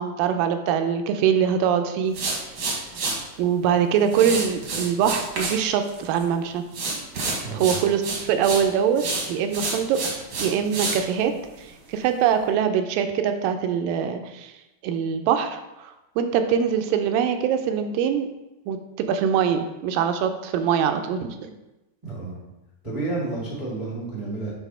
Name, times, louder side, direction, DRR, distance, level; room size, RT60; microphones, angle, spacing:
voice 1, 0.0-2.4 3.4-6.6 7.5-9.0 9.3-10.0 10.4-11.3 11.6-14.5 14.8-18.3 18.7-21.5, right 8 dB, 80° right, 7 dB, 2.1 m, -23 dB
sound 1, 2.1-3.2 4.1-5.6 5.9-6.3 6.7-8.6 9.0-11.0, right 3 dB, 60° right, 1.3 m, -28 dB
voice 2, 7.4-7.7 22.0-22.4 22.8-24.5, right 3 dB, 30° right, -6 dB, 0.5 m, -30 dB
7.1 x 4.0 x 5.5 m, 0.98 s
omnidirectional pair, 4.2 m